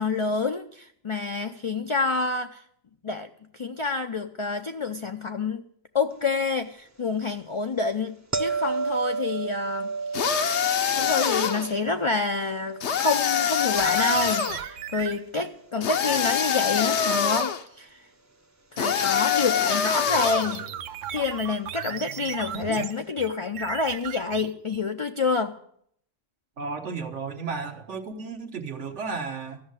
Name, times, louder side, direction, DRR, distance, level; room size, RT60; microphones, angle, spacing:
voice 1, 0.0-2.6 3.0-5.6 5.9-10.4 11.0-18.0 18.7-20.7 21.1-25.6, left 4 dB, 40° left, 6 dB, 0.4 m, -28 dB
sound 1, 8.3-15.3 20.6-20.7, right 4 dB, 20° right, 0.6 m, -33 dB
sound 2, 10.1-11.7 12.8-14.6 15.8-17.6 18.8-20.6, left 8 dB, 70° left, 1.1 m, -24 dB
sound 3, 13.8-15.2 20.1-24.8, right 9 dB, 90° right, 1.1 m, -36 dB
voice 2, 26.6-29.6, right 4 dB, 70° right, 5 dB, 1.5 m, -33 dB
14.0 x 6.4 x 9.6 m, 0.66 s
omnidirectional pair, 1.2 m